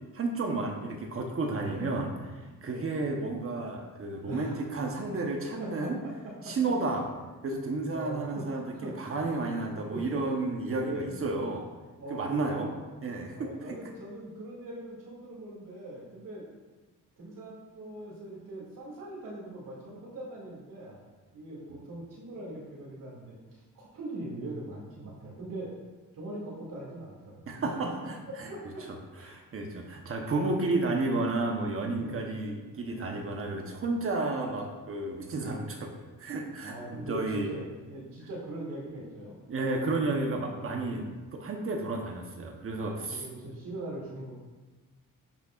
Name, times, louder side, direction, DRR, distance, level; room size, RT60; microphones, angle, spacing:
voice 1, 0.1-6.0 6.4-7.0 7.4-11.7 12.1-12.7 13.0-13.4 27.5-28.5 29.2-35.9 36.2-37.6 39.5-41.1 41.3-43.3, right 2 dB, 40° right, 2 dB, 1.0 m, -32 dB
voice 2, 4.3-4.7 5.6-5.9 6.4-6.5 7.9-9.2 9.9-10.2 10.8-11.2 12.0-12.7 13.3-16.5 17.2-21.0 21.3-25.7 26.1-28.1 28.5-28.9 29.1-29.3 30.3-30.8 32.0-32.3 32.9-33.2 35.0-35.2 36.6-37.2 37.5-39.4 39.6-41.1 42.8-44.3, right 1 dB, 90° right, -5 dB, 2.4 m, -41 dB
10.5 x 6.5 x 2.5 m, 1.3 s
cardioid pair, 125°, 33 cm